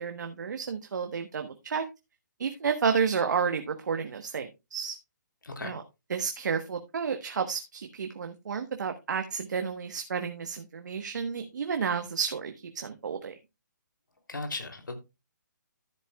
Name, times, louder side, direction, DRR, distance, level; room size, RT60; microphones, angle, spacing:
voice 1, 0.0-1.8 2.4-5.0 5.6-5.8 6.1-13.3, right 6 dB, 65° right, 1.2 m, -31 dB
voice 2, 5.4-5.8 14.3-15.0, left 2 dB, 90° left, 3.0 m, -36 dB
14.0 x 8.3 x 2.3 m
hypercardioid pair, 150°, 10 cm